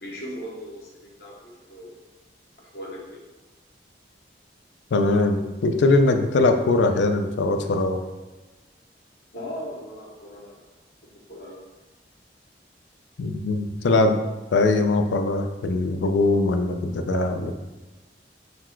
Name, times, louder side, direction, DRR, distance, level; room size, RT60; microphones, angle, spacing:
voice 1, 0.0-1.9 2.6-3.2 9.3-10.6 11.0-11.6, equal, 60° left, -4 dB, 0.8 m, -38 dB
voice 2, 4.9-8.0 13.2-14.2 14.5-17.5, left 2 dB, 85° left, 6 dB, 0.4 m, -21 dB
4.0 x 2.2 x 4.4 m, 1.1 s
head